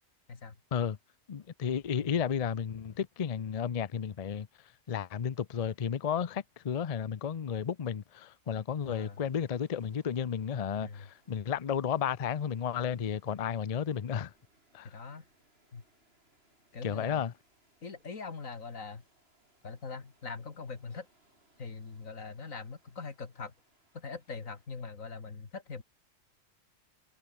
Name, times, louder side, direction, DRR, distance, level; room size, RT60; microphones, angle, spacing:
voice 1, 1.3-4.5 4.9-14.3 14.7-14.9 16.8-17.3, left 8 dB, 40° left, 0.6 m, -33 dB
sound 1, 8.8-24.7, right 1 dB, 50° right, 6.4 m, -70 dB
voice 2, 8.9-9.2 10.8-11.1 14.8-15.2 15.7-15.8 16.7-17.2 17.8-19.0 19.6-21.1 21.6-23.5 23.9-25.8, left 4 dB, 90° left, 2.7 m, -42 dB
omnidirectional pair, 1.3 m